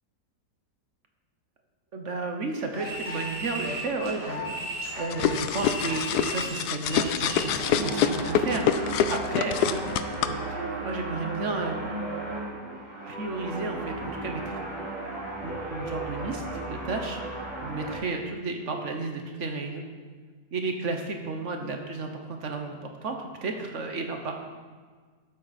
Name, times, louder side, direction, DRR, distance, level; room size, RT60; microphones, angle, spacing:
voice 1, 1.9-4.5 5.0-9.9 10.2-12.0 13.0-14.6 15.4-16.4 16.7-17.2 17.6-19.8 20.5-24.3, right 3 dB, 50° right, 4 dB, 1.2 m, -33 dB
sound 1, 2.7-7.6, right 1 dB, 15° right, 3.4 m, -36 dB
sound 2, 5.1-10.3, left 9 dB, 75° left, 1.1 m, -26 dB
sound 3, 6.9-18.0, right 2 dB, 30° right, 3.7 m, -35 dB
12.0 x 8.3 x 4.2 m, 1.5 s
omnidirectional pair, 1.8 m